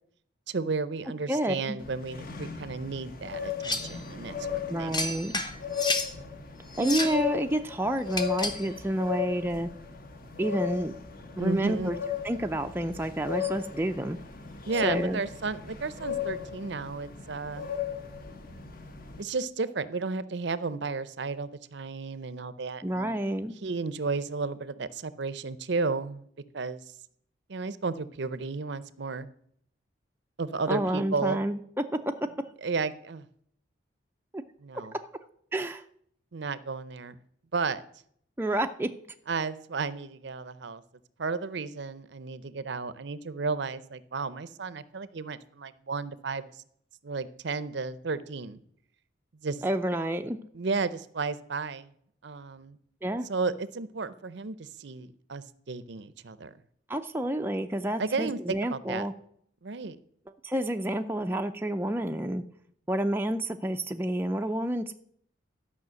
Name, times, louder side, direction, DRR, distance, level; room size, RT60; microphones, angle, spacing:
voice 1, 0.5-4.3 4.8-5.0 6.8-7.0 11.4-11.9 14.7-17.7 19.2-23.1 23.6-26.2 26.5-26.8 27.5-29.3 30.4-31.4 32.6-33.2 34.6-35.0 36.3-37.2 37.5-37.8 39.3-40.8 41.2-46.4 47.0-48.6 49.4-49.6 50.5-51.9 52.2-52.8 53.3-56.5 58.0-59.1 59.6-60.0, right 4 dB, 60° right, 15 dB, 0.6 m, -33 dB
voice 2, 1.3-1.8 4.7-5.3 6.8-9.7 10.4-10.9 11.4-12.0 12.2-14.2 14.7-15.2 22.8-23.6 30.7-32.0 34.3-34.4 35.5-35.8 38.4-38.9 49.6-50.4 53.0-53.3 56.9-59.1 60.4-62.4 62.9-64.9, right 1 dB, 10° right, 5 dB, 0.4 m, -29 dB
sound 1, 1.8-19.2, left 8 dB, 45° left, 1.0 m, -36 dB
sound 2, 3.6-4.0 4.9-6.1 6.7-7.2 8.1-8.7, left 2 dB, 20° left, 0.9 m, -31 dB
12.0 x 5.7 x 7.5 m, 0.66 s
head